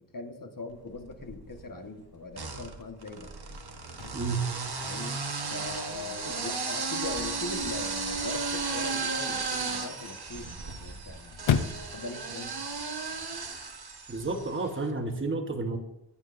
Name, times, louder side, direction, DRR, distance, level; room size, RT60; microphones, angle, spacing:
voice 1, 0.1-3.3 4.8-5.2 5.5-10.5 10.8-11.4 11.8-12.6, left 3 dB, 45° left, 5 dB, 1.3 m, -40 dB
sound 1, 0.9-1.6 2.3-14.6, right 4 dB, 55° right, 1.2 m, -35 dB
Chirp tweet / Car / Slam, 3.6-13.6, left 8 dB, 85° left, 0.7 m, -38 dB
voice 2, 4.1-4.4 14.1-15.8, right 3 dB, 25° right, 5 dB, 1.1 m, -31 dB
15.5 x 9.0 x 2.5 m, 0.88 s
wide cardioid pair, 70°, 45 cm